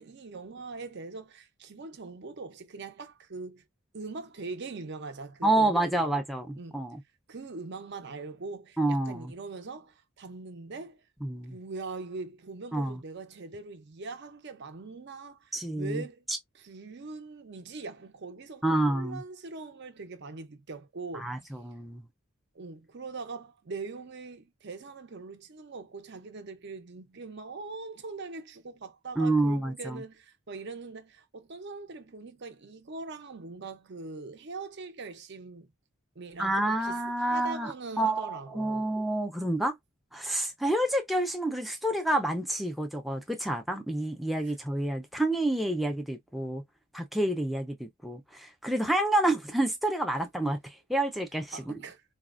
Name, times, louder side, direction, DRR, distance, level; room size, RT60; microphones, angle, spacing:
voice 1, 0.0-3.6 3.9-6.2 6.6-6.8 7.3-11.0 11.5-16.2 16.5-21.3 22.5-35.7 36.2-37.0 37.3-38.9 44.4-44.5 51.5-52.0, right 3 dB, 50° right, 0.6 m, -42 dB
voice 2, 5.4-7.0 8.8-9.3 11.2-11.6 12.7-13.0 15.5-16.0 18.6-19.2 21.1-22.0 29.2-30.0 36.4-39.7 40.1-46.6 46.9-51.7, right 1 dB, ahead, 0.4 m, -29 dB
4.1 x 2.1 x 2.4 m
head